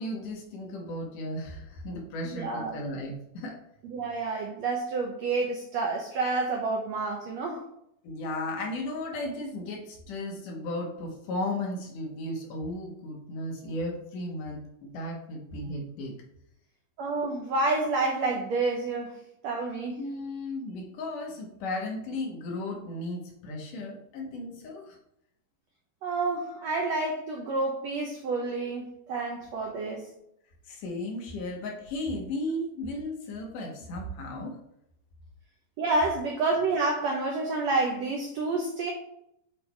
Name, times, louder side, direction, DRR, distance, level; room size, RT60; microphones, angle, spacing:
voice 1, 0.0-3.6 8.0-16.1 20.0-25.0 30.6-34.6, left 1 dB, 60° left, 0 dB, 2.9 m, -35 dB
voice 2, 2.2-2.8 3.9-7.6 17.0-19.1 19.4-20.0 26.0-30.1 35.8-38.9, right 3 dB, 90° right, 1 dB, 1.5 m, -29 dB
9.0 x 3.8 x 4.5 m, 0.77 s
omnidirectional pair, 4.4 m